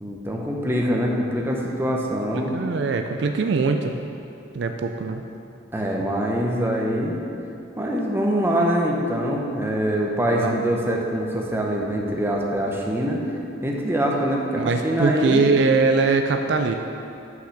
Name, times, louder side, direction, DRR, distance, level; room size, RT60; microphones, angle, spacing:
voice 1, 0.0-2.5 5.7-7.2 7.8-13.2 13.6-15.5, equal, 10° right, -1 dB, 0.8 m, -24 dB
voice 2, 2.3-3.9 4.5-5.2 10.4-10.6 14.6-16.8, right 4 dB, 60° right, 5 dB, 0.4 m, -22 dB
5.9 x 5.7 x 6.4 m, 2.8 s
head